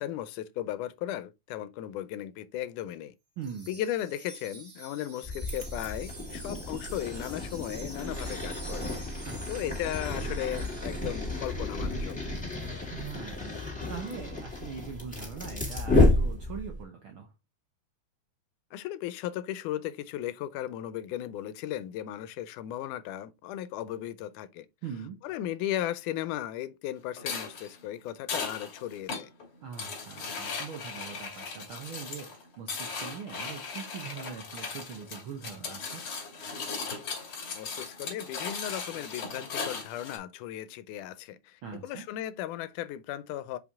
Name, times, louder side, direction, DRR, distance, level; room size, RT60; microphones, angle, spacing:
voice 1, 0.0-3.1 3.7-8.9 9.5-12.2 18.7-24.7 25.2-29.3 37.5-43.6, left 12 dB, 85° left, 2.1 m, -36 dB
Wind chime, 3.4-11.6, right 2 dB, 30° right, 2.8 m, -47 dB
voice 2, 3.4-3.8 9.2-9.7 12.9-17.3 24.8-25.2 29.6-36.0 41.6-42.1, right 6 dB, 75° right, 1.2 m, -42 dB
sound 1, 5.2-16.8, left 2 dB, 5° left, 1.9 m, -31 dB
sound 2, 27.2-40.2, left 4 dB, 45° left, 2.6 m, -38 dB
5.4 x 5.0 x 3.5 m
omnidirectional pair, 3.5 m